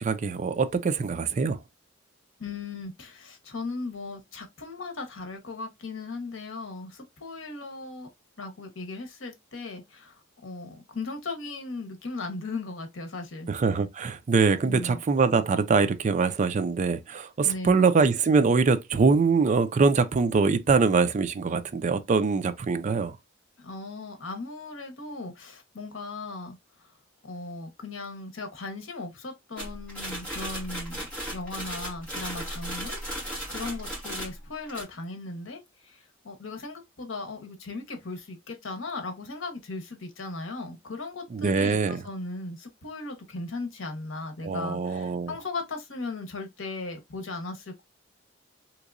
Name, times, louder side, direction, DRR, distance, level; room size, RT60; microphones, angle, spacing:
voice 1, 0.0-1.6 13.5-23.2 41.3-42.0 44.4-45.3, right 4 dB, 40° right, 0.4 m, -23 dB
voice 2, 2.4-8.1 8.4-13.5 14.6-15.0 17.4-17.9 23.6-26.6 27.2-31.0 31.3-33.0 33.5-36.0 36.2-47.8, left 3 dB, 75° left, 1.0 m, -37 dB
sound 1, 29.6-34.8, equal, 5° left, 2.0 m, -36 dB
3.5 x 3.0 x 2.5 m
head